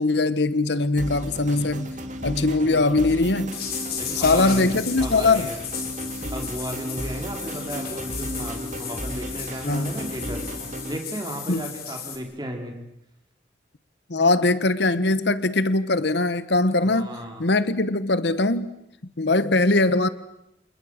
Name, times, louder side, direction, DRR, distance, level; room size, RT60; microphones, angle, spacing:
voice 1, 0.0-1.9 2.2-3.6 4.1-5.5 9.6-10.0 11.5-11.6 14.1-17.1 17.4-18.7 19.2-20.1, left 2 dB, 70° left, 1.1 m, -21 dB
sound 1, 1.0-11.0, equal, 40° right, 2.7 m, -34 dB
voice 2, 1.2-1.8 2.6-3.0 4.0-5.6 6.3-10.5 10.9-12.7 16.8-17.4, right 1 dB, 20° right, 4.4 m, -35 dB
sound 2, 3.5-12.2, left 8 dB, 55° left, 4.7 m, -35 dB
29.5 x 28.5 x 6.5 m
head